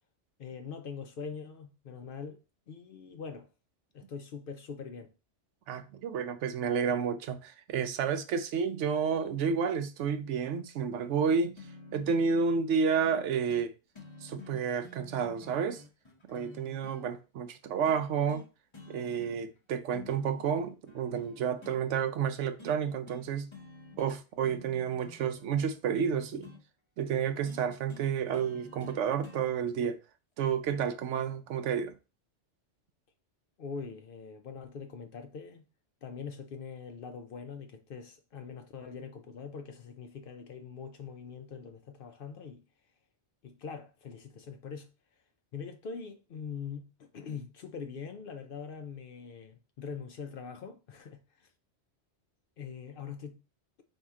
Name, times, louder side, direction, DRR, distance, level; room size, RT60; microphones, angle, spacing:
voice 1, 0.4-2.4 2.7-3.5 3.9-5.1 33.6-35.6 36.0-42.6 43.4-44.9 45.5-51.5 52.6-53.4, left 6 dB, 60° left, 0.6 m, -43 dB
voice 2, 5.7-11.6 11.9-13.7 14.2-15.8 16.3-18.4 18.9-23.5 24.0-26.5 27.0-30.0 30.4-31.9, right 6 dB, 80° right, 0.9 m, -30 dB
sound 1, 11.6-12.2 13.0-13.2 13.5-13.7 14.0-17.0 17.9-18.5 18.7-19.6 19.9-21.8 22.6-22.8 23.1-23.3 23.5-24.2 24.4-26.6 27.5-29.4 30.5-30.6, left 2 dB, 30° left, 0.8 m, -51 dB
4.3 x 2.8 x 3.6 m
omnidirectional pair, 1.2 m